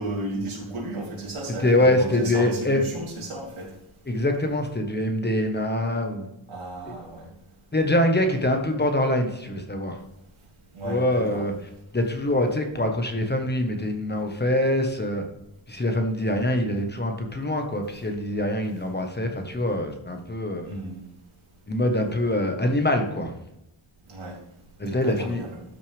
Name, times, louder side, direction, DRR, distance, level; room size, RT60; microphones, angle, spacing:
voice 1, 0.0-3.7 6.5-7.3 10.7-11.4 20.6-21.1 24.1-24.4 24.9-25.5, right 2 dB, 80° right, -3 dB, 3.9 m, -34 dB
voice 2, 1.6-2.8 4.1-6.3 6.8-6.9 7.7-10.0 10.8-11.5 11.9-15.2 15.7-20.8 21.7-23.4 24.8-25.4, left 1 dB, 20° left, 4 dB, 1.4 m, -24 dB
12.5 x 6.4 x 3.5 m, 0.86 s
wide cardioid pair, 125°, 48 cm